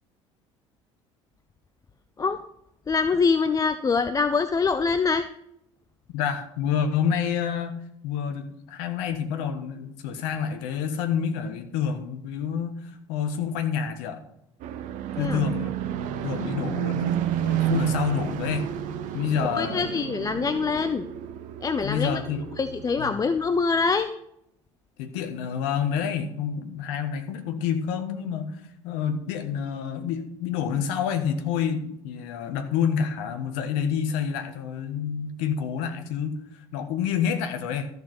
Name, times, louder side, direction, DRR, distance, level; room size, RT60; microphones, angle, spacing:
voice 1, 2.9-5.3 15.2-15.4 19.5-21.0 21.6-22.2 22.6-24.1, left 5 dB, 20° left, 11 dB, 0.6 m, -24 dB
voice 2, 6.1-7.7 8.0-14.2 15.2-18.7 19.1-19.8 21.8-22.4 23.0-23.1 25.0-37.9, left 7 dB, 60° left, 8 dB, 1.4 m, -28 dB
sound 1, 14.6-23.1, right 11 dB, 55° right, 0.9 m, -30 dB
13.5 x 6.4 x 5.1 m, 0.76 s
figure-of-eight pair, 60°, 16 cm